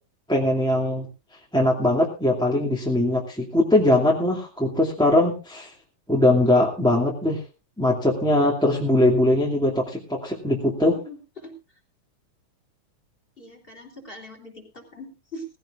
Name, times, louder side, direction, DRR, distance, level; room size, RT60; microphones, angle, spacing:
voice 1, 0.3-1.1 1.5-5.7 6.1-7.4 7.8-10.9, left 1 dB, ahead, -2 dB, 2.0 m, -21 dB
voice 2, 10.9-11.5 13.4-15.4, left 1 dB, 20° left, 4 dB, 3.4 m, -41 dB
19.0 x 16.0 x 2.5 m, 0.30 s
omnidirectional pair, 3.4 m